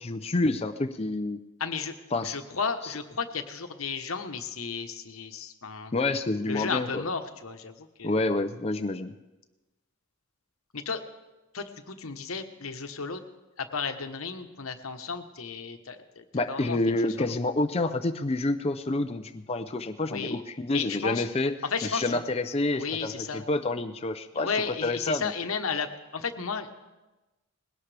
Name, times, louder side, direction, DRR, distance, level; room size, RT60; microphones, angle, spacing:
voice 1, 0.0-1.4 2.1-2.4 2.8-2.9 5.9-7.1 8.0-9.1 16.3-21.6 21.8-24.5 24.8-25.3, left 2 dB, 30° left, 7 dB, 0.5 m, -28 dB
voice 2, 1.6-1.9 2.2-5.9 6.5-8.2 10.7-11.0 11.5-13.2 13.6-17.4 20.1-20.4 20.7-21.3 21.6-22.2 22.8-23.4 24.3-26.7, left 5 dB, 90° left, 7 dB, 1.1 m, -33 dB
20.5 x 17.5 x 3.4 m, 1.1 s
head